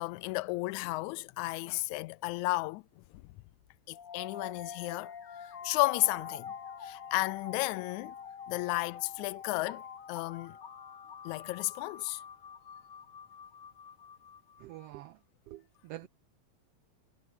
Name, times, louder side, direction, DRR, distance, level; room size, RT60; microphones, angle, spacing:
voice 1, 0.0-2.8 3.9-5.1 5.6-6.5 6.8-8.1 8.5-9.8 10.1-10.6 11.3-12.2, left 21 dB, 85° left, 1.9 m, -33 dB
sound 1, 3.9-14.9, left 7 dB, 45° left, 2.0 m, -46 dB
voice 2, 14.6-15.2 15.5-16.1, right 16 dB, 85° right, 1.3 m, -46 dB
omnidirectional pair, 3.4 m